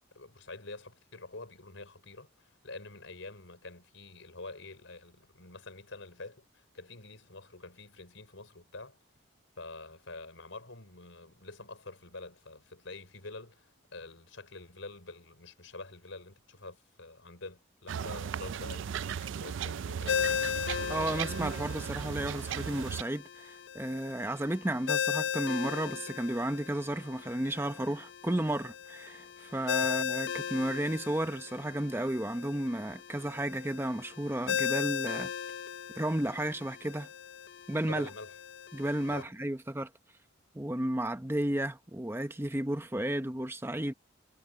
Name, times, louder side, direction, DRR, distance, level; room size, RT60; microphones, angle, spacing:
voice 1, 0.1-9.0 9.6-20.3 29.8-29.9 37.8-38.3 39.1-39.3, left 3 dB, 90° left, 4.9 m, -47 dB
sound 1, 17.9-23.0, right 7 dB, 75° right, 0.4 m, -36 dB
Ringtone, 20.1-39.2, left 7 dB, 65° left, 0.5 m, -37 dB
voice 2, 20.9-35.3 36.0-37.1 37.7-38.1 38.7-39.9 40.5-43.9, right 1 dB, 10° right, 0.9 m, -33 dB
head